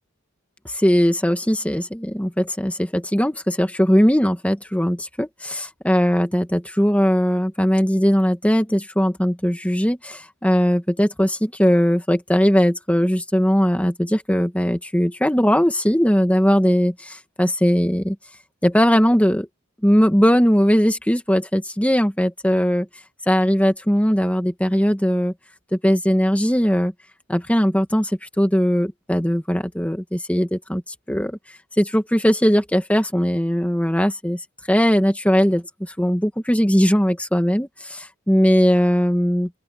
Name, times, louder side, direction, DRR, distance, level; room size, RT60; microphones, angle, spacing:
voice 1, 0.6-18.2 18.6-19.5 19.8-22.9 23.3-25.3 25.7-26.9 27.3-30.8 31.1-31.4 31.8-34.4 34.7-39.5, equal, 5° left, 2.0 m, -19 dB
open air
head